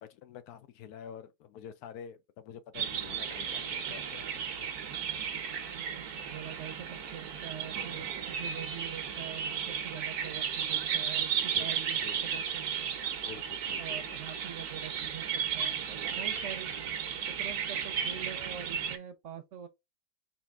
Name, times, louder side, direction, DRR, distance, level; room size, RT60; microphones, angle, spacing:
voice 1, 0.0-4.7 7.9-8.1 11.5-11.7 12.0-12.4 13.2-14.2, left 8 dB, 85° left, 1.2 m, -48 dB
sound 1, 2.7-19.0, right 8 dB, 90° right, 1.3 m, -34 dB
voice 2, 5.7-13.0 13.7-16.7 17.1-19.7, right 9 dB, 60° right, 0.9 m, -45 dB
4.1 x 2.9 x 3.4 m
omnidirectional pair, 1.6 m